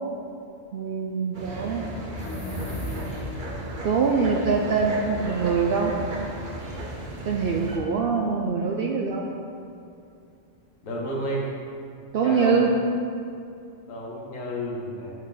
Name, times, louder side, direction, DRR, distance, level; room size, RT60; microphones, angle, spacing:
voice 1, 0.7-1.9 3.8-5.9 7.2-9.3 12.1-12.7, right 5 dB, 65° right, 0 dB, 0.6 m, -24 dB
sound 1, 1.3-7.8, right 1 dB, 40° right, 1.0 m, -35 dB
sound 2, 2.1-3.6, left 1 dB, 15° left, 0.5 m, -34 dB
voice 2, 10.8-11.5 12.2-12.6 13.9-15.1, equal, 75° left, -3 dB, 1.5 m, -31 dB
6.4 x 5.5 x 3.9 m, 2.5 s
omnidirectional pair, 1.4 m